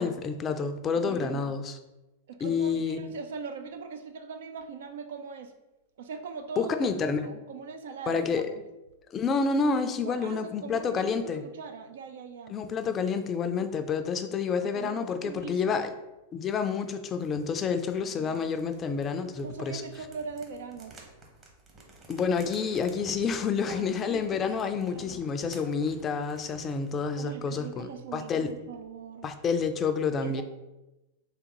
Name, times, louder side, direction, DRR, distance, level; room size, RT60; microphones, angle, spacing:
voice 1, 0.0-1.8 2.4-3.1 6.6-7.2 8.1-8.4 9.1-11.4 12.5-15.9 16.3-19.8 22.1-28.5 29.2-30.4, left 5 dB, 30° left, 8 dB, 0.4 m, -29 dB
voice 2, 1.0-1.6 2.3-5.5 6.0-8.6 10.0-12.5 14.6-15.9 18.0-18.5 19.4-21.0 23.6-24.5 24.9-25.2 27.1-29.3 30.2-30.4, right 5 dB, 70° right, 7 dB, 0.5 m, -41 dB
sound 1, 17.2-27.2, right 2 dB, 30° right, 1.0 m, -53 dB
3.7 x 3.3 x 3.0 m, 1.0 s
hypercardioid pair, 100°, 0 cm